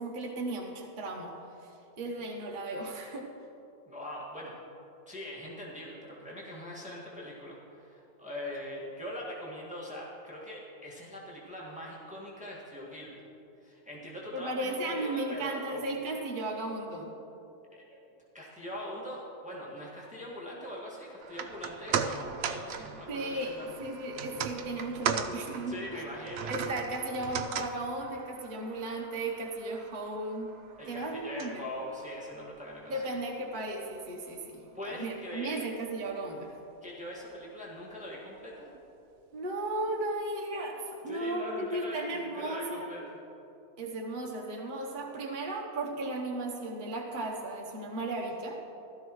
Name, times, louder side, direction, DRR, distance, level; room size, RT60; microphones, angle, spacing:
voice 1, 0.0-1.3 1.6-3.3 14.3-17.1 23.1-26.0 26.5-30.5 30.9-31.6 32.9-36.6 39.3-42.9 43.8-48.7, right 2 dB, 40° right, -1 dB, 1.1 m, -35 dB
voice 2, 3.9-4.6 5.1-13.2 13.6-15.8 17.7-17.8 18.3-23.8 25.7-26.5 30.8-33.0 34.7-35.6 36.8-38.7 41.1-43.0, left 1 dB, 5° right, -5 dB, 1.8 m, -42 dB
sound 1, 21.2-33.6 33.9-34.0, right 6 dB, 65° right, 0.6 m, -38 dB
16.0 x 13.0 x 3.1 m, 3.0 s
omnidirectional pair, 1.6 m